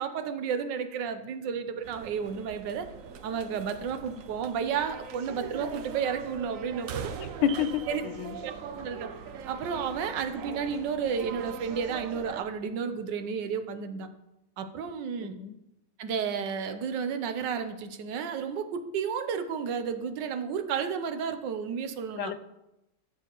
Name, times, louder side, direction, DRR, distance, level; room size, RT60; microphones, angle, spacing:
voice 1, 0.0-2.9 3.2-7.1 7.9-8.0 8.4-9.1 9.5-14.1 14.6-15.3 16.0-22.3, right 6 dB, 80° right, 9 dB, 1.4 m, -32 dB
sound 1, 1.8-12.4, right 6 dB, 65° right, 0.9 m, -41 dB
voice 2, 7.4-8.4 15.2-15.6 22.2-22.4, left 9 dB, 85° left, 12 dB, 1.2 m, -29 dB
12.5 x 7.2 x 3.0 m, 0.91 s
omnidirectional pair, 1.9 m